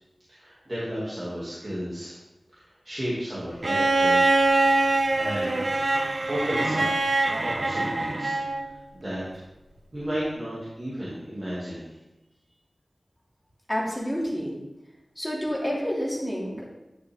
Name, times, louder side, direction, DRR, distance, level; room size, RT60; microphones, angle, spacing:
voice 1, 0.3-2.1 2.6-4.4 4.9-5.7 6.3-9.2 9.9-11.9, equal, 35° right, -9 dB, 2.6 m, -33 dB
Bowed string instrument, 3.6-8.7 10.1-10.2, right 2 dB, 60° right, 0.9 m, -23 dB
voice 2, 13.7-14.6 15.2-16.7, equal, 10° left, -5 dB, 2.8 m, -29 dB
10.5 x 6.1 x 3.8 m, 0.99 s
wide cardioid pair, 75°, 0 cm